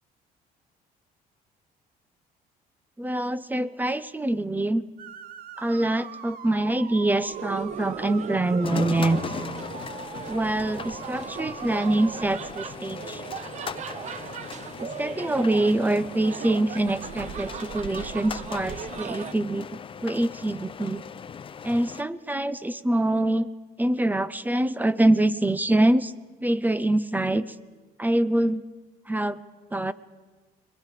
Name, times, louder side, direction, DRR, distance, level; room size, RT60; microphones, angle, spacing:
voice 1, 3.0-4.8 5.6-9.2 10.3-13.2 14.8-21.0 21.6-23.5 23.8-26.1 26.4-27.5 28.0-28.6 29.1-29.4 29.7-29.9, right 1 dB, 10° right, 16 dB, 0.7 m, -25 dB
sound 1, 5.0-12.1, right 8 dB, 60° right, 1.3 m, -42 dB
sound 2, 7.2-19.3, right 8 dB, 45° right, 0.7 m, -38 dB
sound 3, 8.6-22.0, left 7 dB, 30° left, 0.6 m, -38 dB
26.0 x 21.5 x 4.9 m, 1.3 s
cardioid pair, 110°, 17 cm